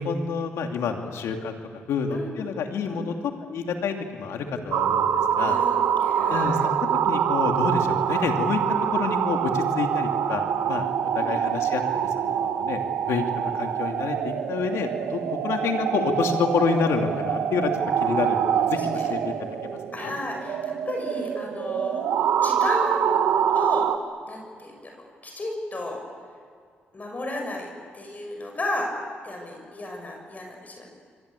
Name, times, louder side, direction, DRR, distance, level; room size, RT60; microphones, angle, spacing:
voice 1, 0.0-1.6 1.9-5.6 6.3-6.7 7.0-8.6 8.9-10.9 11.1-12.8 13.1-13.3 13.5-17.7 18.0-19.5 20.0-20.1, left 5 dB, 85° left, 4 dB, 2.7 m, -28 dB
sound 1, 4.7-24.0, right 9 dB, 85° right, 1.3 m, -25 dB
voice 2, 5.3-6.7 11.1-11.3 18.0-19.1 19.9-22.0 22.4-23.1 23.5-23.9 24.3-24.9 25.2-26.0 26.9-28.9 29.2-30.9, left 1 dB, 35° left, 2 dB, 6.6 m, -33 dB
28.5 x 24.0 x 8.5 m, 2.2 s
cardioid pair, 70°, 5 cm